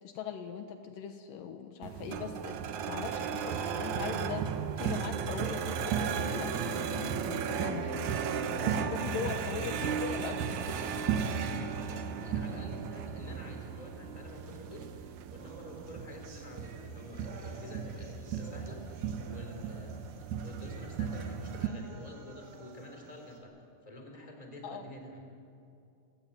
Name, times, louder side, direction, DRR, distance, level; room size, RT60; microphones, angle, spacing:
voice 1, 0.0-8.1 8.6-10.6 24.6-24.8, left 7 dB, 75° left, 7 dB, 2.7 m, -40 dB
sound 1, 1.8-21.7, right 7 dB, 65° right, 2.2 m, -35 dB
sound 2, 5.7-13.8, left 1 dB, 45° left, 4.8 m, -49 dB
voice 2, 9.1-10.4 10.6-20.1 20.4-25.3, left 1 dB, 10° left, 3 dB, 3.4 m, -49 dB
sound 3, 15.4-23.4, right 4 dB, 90° right, 4.4 m, -53 dB
28.5 x 16.0 x 9.2 m, 2.6 s
omnidirectional pair, 4.1 m